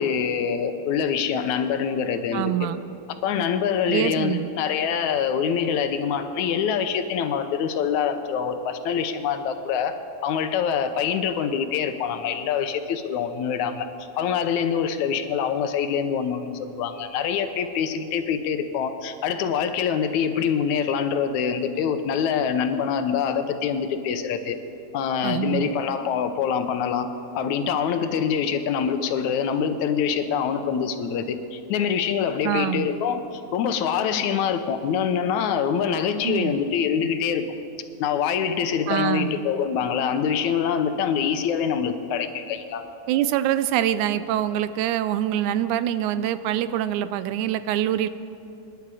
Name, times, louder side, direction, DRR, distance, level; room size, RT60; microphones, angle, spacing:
voice 1, 0.0-2.7 3.2-10.0 10.2-13.9 14.2-24.6 24.9-27.1 27.4-37.5 38.0-42.8, left 7 dB, 75° left, 9 dB, 2.2 m, -25 dB
voice 2, 2.3-2.8 3.9-4.5 25.2-25.7 32.4-32.9 36.2-36.5 38.9-39.4 43.1-48.1, right 12 dB, 85° right, 13 dB, 2.0 m, -25 dB
26.5 x 10.5 x 4.9 m, 2.7 s
omnidirectional pair, 3.4 m